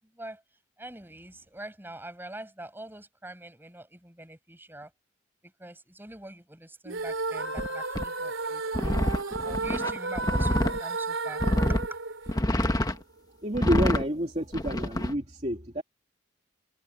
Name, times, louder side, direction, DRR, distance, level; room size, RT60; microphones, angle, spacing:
voice 1, 0.0-0.4 0.8-4.9 5.4-9.0 9.4-12.0, right 1 dB, 10° right, 7.3 m, -44 dB
sound 1, 6.8-13.0, right 3 dB, 80° right, 3.0 m, -33 dB
sound 2, 7.6-7.7 8.0-8.1 8.7-10.8 11.4-11.9 12.3-13.0 13.5-14.0 14.5-15.1, left 1 dB, 20° left, 1.6 m, -26 dB
voice 2, 13.4-15.8, equal, 35° right, 2.8 m, -29 dB
head